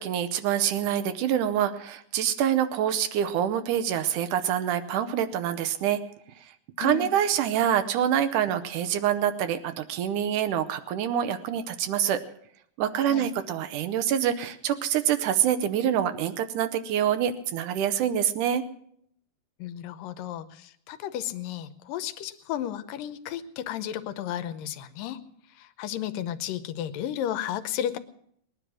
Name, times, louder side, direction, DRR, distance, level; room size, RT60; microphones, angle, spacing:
voice 1, 0.0-6.0 6.8-12.2 12.8-18.6, right 10 dB, 75° right, 10 dB, 2.2 m, -26 dB
voice 2, 6.8-7.1 13.1-13.3 19.6-25.2 25.6-28.0, left 11 dB, 90° left, 12 dB, 2.5 m, -33 dB
19.5 x 10.0 x 6.1 m, 0.68 s
omnidirectional pair, 3.8 m